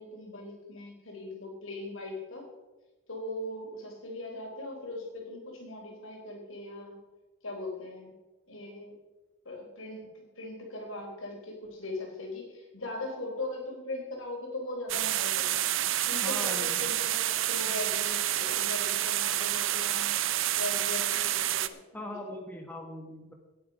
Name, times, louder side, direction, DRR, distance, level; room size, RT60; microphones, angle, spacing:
voice 1, 0.0-2.5 3.1-7.0 7.4-8.1 8.5-9.0 9.4-15.7 16.1-20.1 20.6-22.3, left 2 dB, 75° left, 1 dB, 3.9 m, -40 dB
sound 1, 14.9-21.7, right 13 dB, 70° right, 0.6 m, -29 dB
voice 2, 16.2-16.9 21.9-23.3, left 1 dB, 10° left, 2 dB, 1.3 m, -40 dB
17.5 x 8.6 x 5.1 m, 1.2 s
head